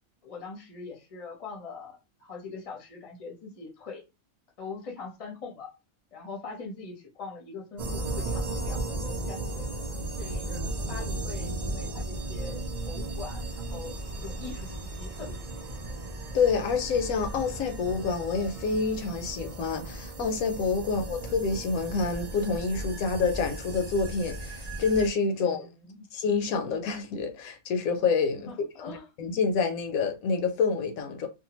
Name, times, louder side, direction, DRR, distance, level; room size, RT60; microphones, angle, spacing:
voice 1, 0.2-4.0 4.6-5.7 6.1-9.7 10.2-15.5 25.4-26.0 28.5-29.1, left 4 dB, 35° left, 0.6 m, -42 dB
sound 1, 7.8-25.1, right 2 dB, 90° right, 0.3 m, -35 dB
voice 2, 16.3-25.7 26.1-28.5 28.8-31.3, left 5 dB, 75° left, 1.0 m, -27 dB
2.6 x 2.2 x 2.9 m
omnidirectional pair, 1.5 m